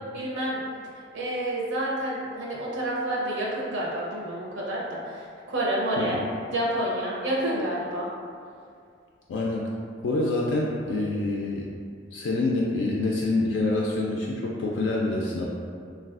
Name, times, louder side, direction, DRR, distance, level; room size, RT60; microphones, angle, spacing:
voice 1, 0.1-0.6 1.1-5.2 5.5-6.2 6.5-8.1, right 1 dB, 85° right, -4 dB, 0.7 m, -29 dB
voice 2, 9.3-9.7 10.0-11.7 12.1-15.4, left 2 dB, 85° left, -3 dB, 0.3 m, -26 dB
3.3 x 2.3 x 2.4 m, 2.3 s
head